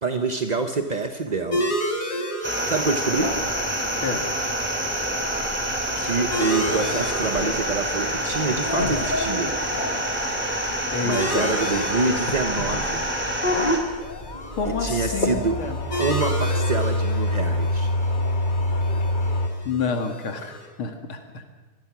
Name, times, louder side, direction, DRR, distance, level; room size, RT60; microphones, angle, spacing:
voice 1, 0.0-1.8 2.7-3.3 6.0-9.5 11.0-13.0 14.6-15.6 16.0-17.9, right 3 dB, 40° right, 6 dB, 0.6 m, -26 dB
sound 1, 1.5-20.7, equal, 45° left, 3.9 m, -34 dB
sound 2, 2.4-13.8, right 1 dB, 5° right, 3.0 m, -27 dB
sound 3, 3.1-19.5, left 1 dB, 25° left, 1.4 m, -28 dB
voice 2, 10.9-11.6 14.6-15.8 19.6-21.4, left 5 dB, 70° left, 5 dB, 2.9 m, -29 dB
25.5 x 20.0 x 6.1 m, 1.3 s
omnidirectional pair, 2.4 m